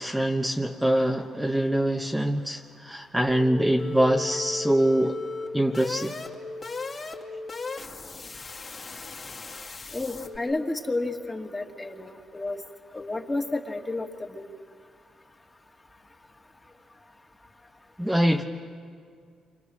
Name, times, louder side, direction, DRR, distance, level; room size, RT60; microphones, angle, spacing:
voice 1, 0.0-5.2 5.5-6.1 18.0-18.4, right 1 dB, 5° right, 1 dB, 1.2 m, -24 dB
sound 1, 3.3-10.4, left 3 dB, 35° left, 2.6 m, -36 dB
voice 2, 9.9-12.6 12.9-14.4, left 2 dB, 20° left, 3 dB, 2.2 m, -31 dB
28.5 x 26.0 x 6.4 m, 2.1 s
cardioid pair, 90°, 0 cm